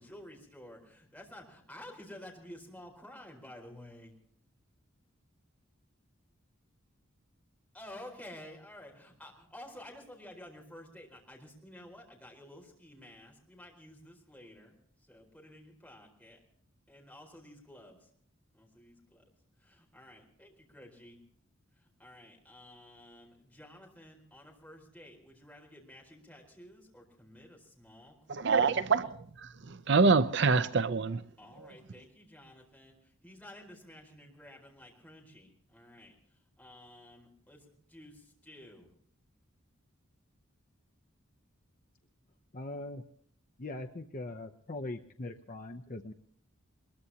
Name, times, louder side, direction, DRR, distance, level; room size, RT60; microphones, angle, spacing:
voice 1, 0.0-4.1 7.7-14.7 15.0-16.4 16.9-18.1 18.5-19.2 19.6-21.2 21.7-28.9 31.4-38.9, left 1 dB, 5° left, 4.5 m, -52 dB
voice 2, 28.3-31.2, right 4 dB, 55° right, 0.6 m, -26 dB
voice 3, 42.5-43.0 43.6-46.1, left 2 dB, 40° left, 0.7 m, -41 dB
22.5 x 22.0 x 2.9 m
head